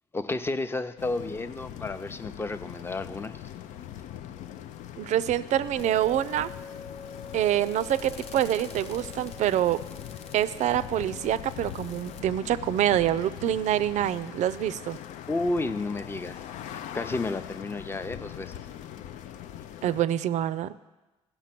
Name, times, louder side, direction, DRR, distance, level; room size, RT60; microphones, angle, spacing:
voice 1, 0.1-3.4 15.3-16.4 16.9-18.6, left 2 dB, 20° left, 10 dB, 0.6 m, -31 dB
sound 1, 1.0-20.0, left 11 dB, 85° left, 0.4 m, -42 dB
voice 2, 5.0-6.5 7.3-9.8 10.3-15.0 19.8-20.7, right 11 dB, 75° right, 15 dB, 0.4 m, -26 dB
sound 2, 5.8-12.2, left 5 dB, 60° left, 0.8 m, -45 dB
15.0 x 5.4 x 5.9 m, 1.1 s
cardioid pair, 95°, 12 cm